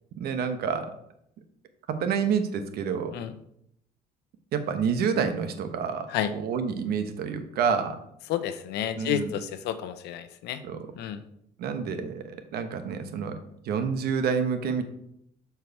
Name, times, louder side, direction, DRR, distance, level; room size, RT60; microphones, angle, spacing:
voice 1, 0.2-0.9 1.9-3.1 4.5-8.0 8.9-9.3 10.6-10.8 11.6-13.4 13.6-14.8, right 6 dB, 70° right, 8 dB, 1.0 m, -28 dB
voice 2, 8.3-10.6 11.0-11.2, left 10 dB, 80° left, 11 dB, 0.7 m, -30 dB
6.9 x 4.6 x 4.6 m, 0.74 s
cardioid pair, 110°, 17 cm